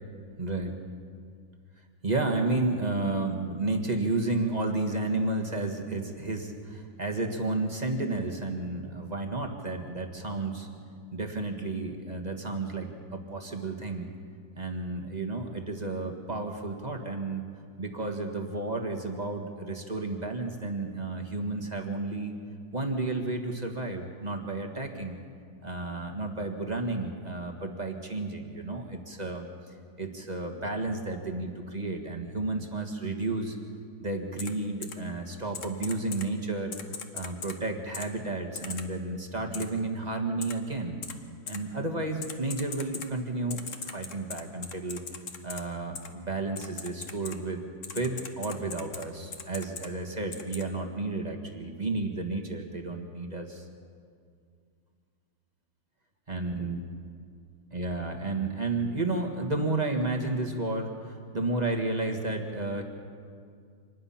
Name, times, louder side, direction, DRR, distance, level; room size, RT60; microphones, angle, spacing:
voice 1, 0.4-0.8 2.0-10.7 11.1-14.1 14.6-17.5 17.8-22.3 22.7-25.2 25.6-29.5 30.0-33.6 34.0-36.7 37.1-41.0 41.5-43.6 43.8-45.0 45.4-47.6 47.9-53.6 56.3-56.8 57.7-62.8, right 2 dB, 20° right, 3 dB, 1.5 m, -32 dB
Typing, 34.4-34.5 34.8-34.9 35.5-36.2 36.7-37.5 37.9-38.1 38.5-38.8 39.5-39.6 40.4-40.5 41.0-41.1 41.5-41.6 42.2-43.1 43.5-45.6 45.9-46.1 46.5-47.3 47.8-49.0 49.3-49.9 50.3-50.6, left 6 dB, 45° left, 1.3 m, -39 dB
25.0 x 20.0 x 5.8 m, 2.2 s
omnidirectional pair, 2.2 m